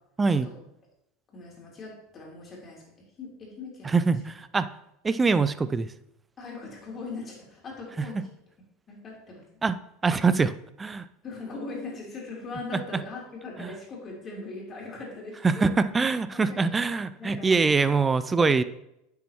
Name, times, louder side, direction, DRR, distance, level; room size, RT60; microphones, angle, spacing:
voice 1, 0.3-0.6 1.3-4.0 6.4-8.2 8.9-9.5 11.2-15.7 16.3-16.9 17.2-18.0 18.4-18.6, left 3 dB, 30° left, -2 dB, 3.5 m, -40 dB
voice 2, 3.8-4.7 5.0-5.9 9.6-9.8 10.0-11.1 12.7-13.0 13.6-13.7 15.4-18.6, right 4 dB, 20° right, 14 dB, 0.4 m, -24 dB
9.4 x 7.1 x 3.0 m, 0.82 s
hypercardioid pair, 80°, 0 cm